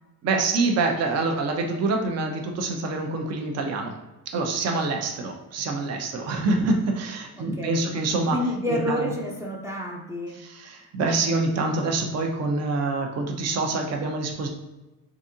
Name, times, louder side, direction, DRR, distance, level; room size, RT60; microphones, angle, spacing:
voice 1, 0.2-3.9 4.3-8.4 8.7-9.1 10.3-14.5, right 3 dB, 45° right, 2 dB, 0.7 m, -26 dB
voice 2, 7.4-7.8 8.3-10.4, equal, 10° right, -2 dB, 0.5 m, -29 dB
3.9 x 3.6 x 2.7 m, 1.1 s
cardioid pair, 130°, 37 cm